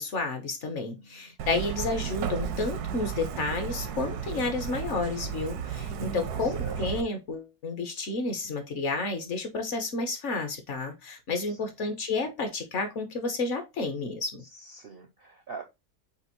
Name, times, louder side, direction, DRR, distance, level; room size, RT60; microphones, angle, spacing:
voice 1, 0.0-14.4, left 3 dB, 55° left, 1.0 m, -31 dB
Truck, 1.4-7.0, right 7 dB, 80° right, 1.2 m, -33 dB
voice 2, 6.4-6.8 14.5-15.6, right 5 dB, 60° right, 0.6 m, -43 dB
6.9 x 2.5 x 2.9 m
omnidirectional pair, 1.6 m